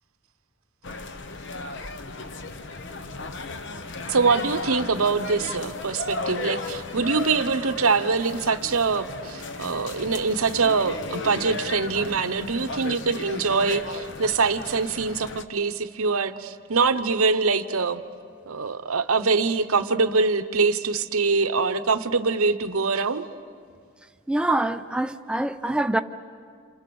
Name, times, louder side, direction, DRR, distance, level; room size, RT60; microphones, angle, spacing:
sound 1, 0.8-15.4, left 3 dB, 55° left, 1.0 m, -35 dB
voice 1, 4.1-18.0 18.5-23.3, right 4 dB, 85° right, 1.0 m, -24 dB
voice 2, 24.3-26.0, right 1 dB, 5° right, 0.6 m, -24 dB
28.5 x 28.0 x 7.1 m
head